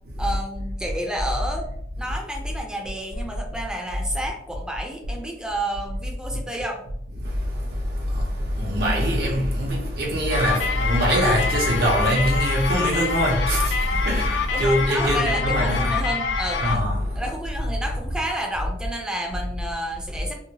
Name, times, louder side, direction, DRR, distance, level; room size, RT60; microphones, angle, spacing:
voice 1, 0.2-1.6 2.0-6.9 14.5-16.9 17.2-20.3, right 1 dB, 5° right, 0.4 m, -30 dB
voice 2, 7.2-16.0 16.6-17.2, equal, 60° right, 0.6 m, -23 dB
sound 1, 10.3-16.8, left 6 dB, 90° left, 0.3 m, -26 dB
2.8 x 2.1 x 2.7 m
head